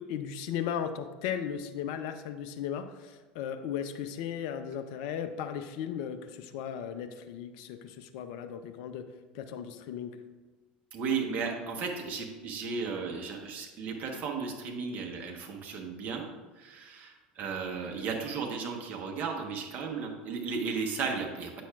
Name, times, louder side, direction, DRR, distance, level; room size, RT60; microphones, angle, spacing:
voice 1, 0.0-9.1 9.3-10.2, left 8 dB, 60° left, 8 dB, 0.4 m, -36 dB
voice 2, 10.9-16.3 16.6-21.6, right 5 dB, 40° right, 1 dB, 1.1 m, -35 dB
8.3 x 5.7 x 2.4 m, 1.3 s
hypercardioid pair, 75°, 5 cm